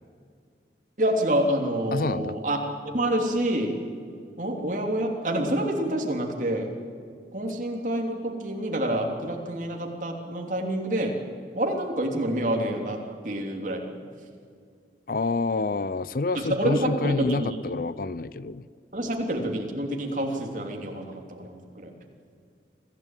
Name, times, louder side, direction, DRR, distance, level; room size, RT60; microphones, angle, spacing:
voice 1, 1.0-2.6 2.9-3.8 4.4-6.7 7.3-11.2 11.5-13.0 13.2-13.8 16.3-17.5 18.9-21.9, right 1 dB, 45° right, 2 dB, 3.2 m, -27 dB
voice 2, 1.9-2.4 15.1-18.6, left 3 dB, 50° left, 18 dB, 0.5 m, -28 dB
24.5 x 16.0 x 9.1 m, 2.2 s
head